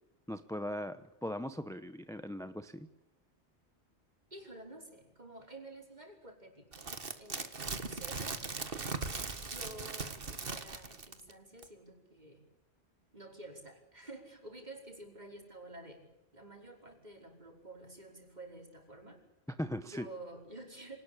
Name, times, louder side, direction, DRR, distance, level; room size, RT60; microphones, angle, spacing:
voice 1, 0.3-2.9 19.5-20.1, left 1 dB, 5° left, 10 dB, 0.8 m, -39 dB
voice 2, 4.3-6.9 7.2-8.4 9.5-12.4 13.1-16.0 16.3-19.2 19.8-21.0, right 2 dB, 40° right, 2 dB, 5.1 m, -50 dB
sound 1, 6.7-11.3 11.6-11.7, right 4 dB, 55° right, 1.9 m, -39 dB
26.0 x 19.0 x 8.7 m, 0.99 s
omnidirectional pair, 1.1 m